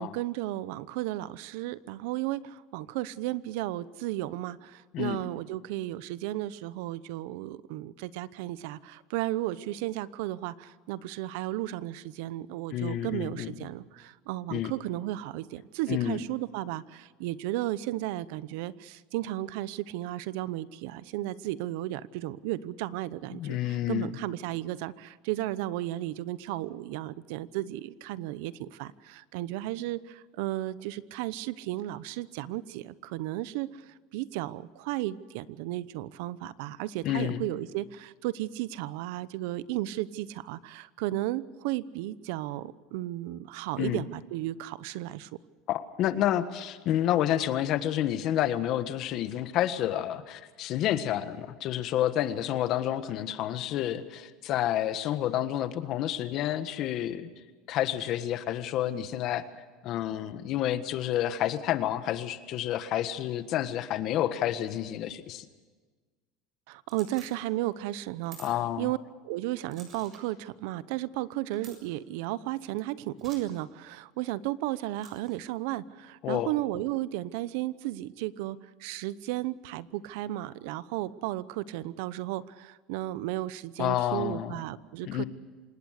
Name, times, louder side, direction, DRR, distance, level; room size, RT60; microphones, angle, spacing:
voice 1, 0.0-45.3 66.7-69.0 69.2-85.2, right 15 dB, 75° right, 18 dB, 0.8 m, -34 dB
voice 2, 12.7-13.5 14.5-14.7 15.9-16.2 23.3-24.1 37.0-37.5 43.8-44.0 45.7-57.3 57.7-59.4 59.8-65.5 68.4-68.9 76.2-76.5 83.8-84.6 85.0-85.2, left 12 dB, 50° left, 11 dB, 1.5 m, -29 dB
sound 1, 66.9-67.3 68.2-68.5 69.7-70.2 71.5-71.8 73.2-73.4 75.0-75.4, right 5 dB, 35° right, 7.1 m, -50 dB
26.5 x 20.0 x 6.6 m, 1.4 s
supercardioid pair, 140°, 0 cm